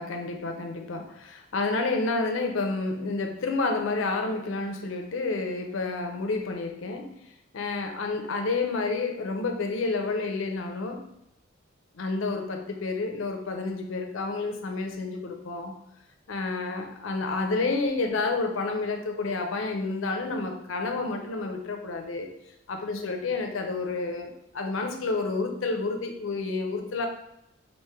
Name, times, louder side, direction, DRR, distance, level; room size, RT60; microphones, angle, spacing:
voice 1, 0.0-7.1 7.5-11.1 11.9-15.8 16.3-22.3 22.7-27.1, left 3 dB, 75° left, 4 dB, 0.6 m, -30 dB
3.5 x 2.6 x 3.1 m, 0.84 s
head